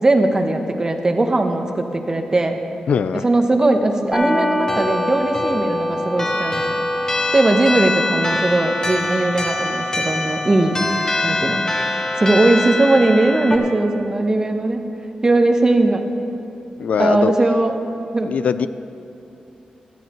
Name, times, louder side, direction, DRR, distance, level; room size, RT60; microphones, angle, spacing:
voice 1, 0.0-2.6 3.1-6.6 7.3-10.8 11.2-11.7 12.2-14.8 15.2-16.1 17.0-17.8 18.1-18.3, right 2 dB, 25° right, 5 dB, 1.0 m, -18 dB
voice 2, 2.9-3.2 16.8-17.3 18.2-18.7, left 7 dB, 70° left, 13 dB, 0.3 m, -20 dB
sound 1, 4.1-13.6, left 2 dB, 25° left, 1.4 m, -23 dB
16.5 x 13.0 x 3.0 m, 2.8 s
wide cardioid pair, 105°, 2 cm